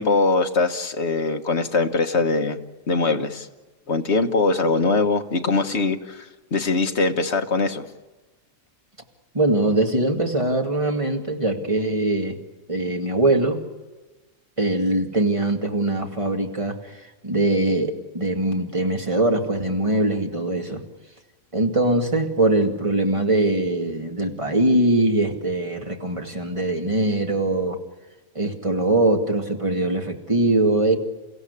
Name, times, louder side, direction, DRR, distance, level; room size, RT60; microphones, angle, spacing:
voice 1, 0.0-2.6 2.9-3.5 3.9-7.8, left 3 dB, 55° left, 5 dB, 1.7 m, -22 dB
voice 2, 9.3-12.4 12.7-13.6 14.6-16.8 17.2-20.8 21.5-27.8 28.3-31.0, right 2 dB, 25° right, 2 dB, 2.4 m, -22 dB
29.5 x 16.0 x 8.3 m, 1.2 s
omnidirectional pair, 1.4 m